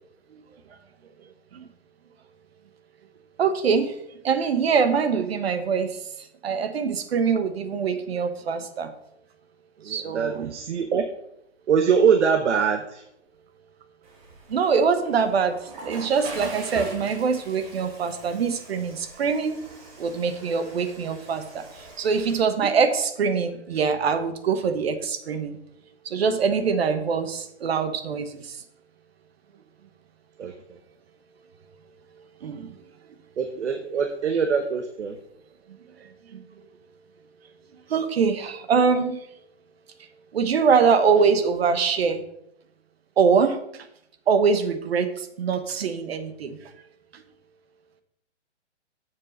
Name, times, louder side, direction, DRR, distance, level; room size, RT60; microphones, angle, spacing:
voice 1, 3.4-3.9 4.2-8.9 9.8-10.5 14.5-19.6 20.0-25.6 26.0-28.6 32.4-32.7 36.3-36.4 37.9-39.2 40.3-42.2 43.2-43.6 44.3-46.7 47.1-47.2, right 5 dB, 60° right, 10 dB, 1.1 m, -24 dB
voice 2, 9.8-11.1 11.7-13.0 30.4-30.5 33.4-35.2, right 6 dB, 75° right, 7 dB, 0.9 m, -23 dB
Water / Toilet flush, 14.0-22.4, right 2 dB, 30° right, 1.8 m, -42 dB
7.5 x 4.6 x 6.4 m, 0.77 s
hypercardioid pair, 155°, 35 cm